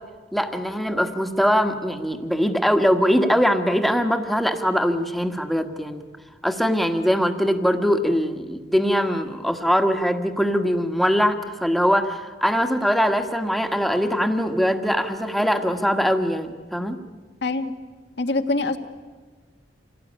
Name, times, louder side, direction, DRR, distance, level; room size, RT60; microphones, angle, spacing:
voice 1, 0.3-6.0 6.4-17.0, equal, ahead, 6 dB, 1.5 m, -22 dB
voice 2, 17.4-17.7 18.2-18.8, left 2 dB, 70° left, 6 dB, 1.7 m, -24 dB
27.0 x 18.0 x 10.0 m, 1.5 s
head